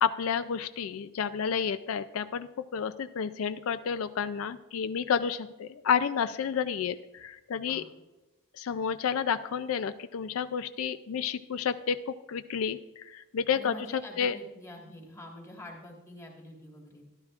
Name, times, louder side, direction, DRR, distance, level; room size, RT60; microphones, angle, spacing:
voice 1, 0.0-7.8 8.6-14.4, left 7 dB, 85° left, 12 dB, 0.4 m, -30 dB
voice 2, 13.5-17.0, equal, 15° left, 0 dB, 1.6 m, -46 dB
13.0 x 11.5 x 2.4 m, 1.1 s
head